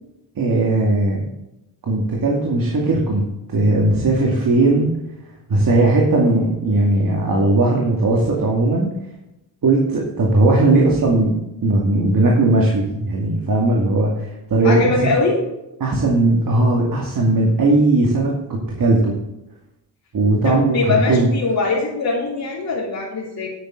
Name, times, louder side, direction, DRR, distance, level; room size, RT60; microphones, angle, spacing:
voice 1, 0.4-1.3 1.8-3.2 3.5-4.9 5.5-8.9 9.6-11.3 11.6-15.1 15.8-19.1 20.1-21.3, right 2 dB, 55° right, -2 dB, 2.4 m, -18 dB
voice 2, 14.6-15.4 20.4-23.5, left 3 dB, 55° left, -8 dB, 3.7 m, -21 dB
11.0 x 8.6 x 3.9 m, 0.92 s
cardioid pair, 105°, 41 cm